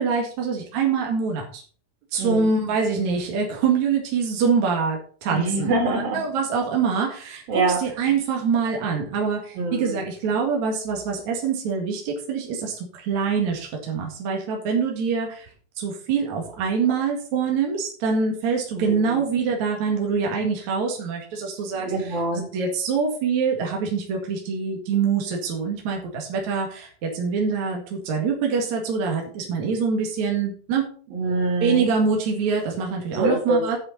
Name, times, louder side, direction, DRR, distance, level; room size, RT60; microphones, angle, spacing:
voice 1, 0.0-1.6 2.1-15.5 15.8-21.9 22.5-30.9 31.6-33.8, right 5 dB, 55° right, 1 dB, 3.2 m, -25 dB
voice 2, 2.2-2.5 5.3-6.2 7.5-7.8 9.5-10.0 18.8-19.2 21.7-22.5 31.1-31.9 33.1-33.6, right 2 dB, 80° right, 1 dB, 4.8 m, -25 dB
8.7 x 7.8 x 5.4 m, 0.43 s
omnidirectional pair, 4.0 m